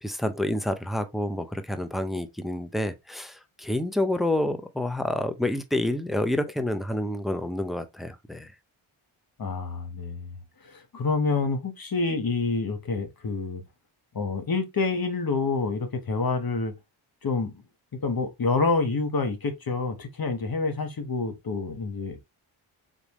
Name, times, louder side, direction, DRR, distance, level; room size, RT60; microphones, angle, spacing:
voice 1, 0.0-8.5, left 1 dB, ahead, 0.7 m, -28 dB
voice 2, 9.4-10.4 10.7-13.6 14.1-16.7 17.2-17.6 18.0-22.2, left 4 dB, 45° left, 1.4 m, -27 dB
4.1 x 3.5 x 3.1 m
cardioid pair, 60°, 50 cm